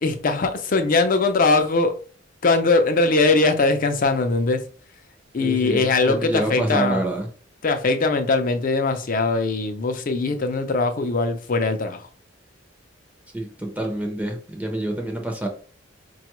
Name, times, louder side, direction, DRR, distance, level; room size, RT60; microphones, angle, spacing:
voice 1, 0.0-2.0 2.4-4.7 5.3-7.0 7.6-12.1, left 3 dB, 45° left, 0.5 m, -21 dB
voice 2, 5.4-7.3 13.3-15.5, right 1 dB, 10° right, 0.6 m, -27 dB
4.9 x 2.3 x 3.0 m
head